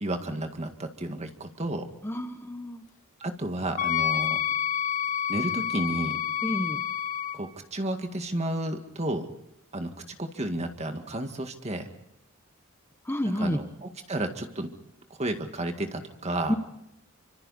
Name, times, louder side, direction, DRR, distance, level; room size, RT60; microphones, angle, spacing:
voice 1, 0.0-1.9 3.2-4.4 5.3-6.2 7.3-9.3 9.7-9.9 10.2-11.9 13.3-14.7 15.2-16.5, right 1 dB, 30° right, 6 dB, 2.0 m, -32 dB
voice 2, 2.0-2.8 6.4-6.8 13.0-13.6 16.5-16.6, equal, 10° left, 7 dB, 1.0 m, -29 dB
Wind instrument woodwind instrument, 3.8-7.4, left 9 dB, 35° left, 1.1 m, -28 dB
28.5 x 25.5 x 4.2 m, 0.81 s
head